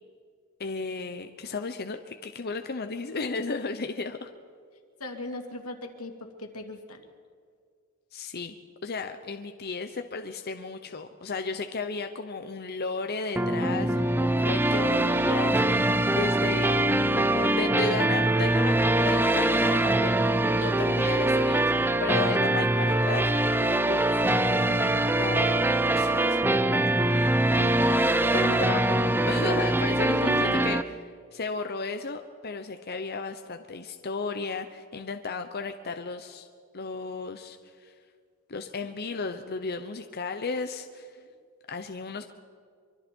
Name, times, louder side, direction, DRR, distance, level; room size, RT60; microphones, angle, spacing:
voice 1, 0.6-4.3 8.1-8.5 8.8-16.8 17.3-18.8 19.0-20.1 20.5-21.7 22.0-23.3 23.9-24.1 25.1-25.6 25.9-27.7 28.3-29.0 29.3-30.8 31.3-36.5 36.7-37.9 38.5-41.2 41.7-42.3, left 4 dB, 45° left, 7 dB, 0.9 m, -34 dB
voice 2, 5.0-7.0 24.2-24.5 29.9-30.6 41.2-41.3, left 1 dB, 85° left, 4 dB, 2.4 m, -38 dB
sound 1, 13.4-30.8, right 1 dB, 10° right, 0.6 m, -23 dB
24.5 x 24.5 x 4.6 m, 2.1 s
head